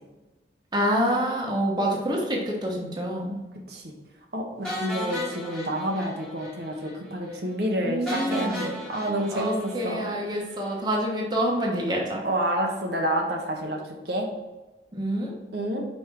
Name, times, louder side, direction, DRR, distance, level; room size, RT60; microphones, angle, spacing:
voice 1, 0.7-3.4 7.8-8.6 9.3-12.2 14.9-15.3, equal, 25° right, -2 dB, 1.2 m, -27 dB
voice 2, 4.3-10.1 12.2-13.8 14.0-14.3 15.5-15.8, right 1 dB, 70° right, 0 dB, 1.2 m, -28 dB
sound 1, 4.6-6.6 6.8-6.9 7.3-7.4 8.1-10.4, equal, 5° left, 1.6 m, -35 dB
5.5 x 5.4 x 4.7 m, 1.2 s
head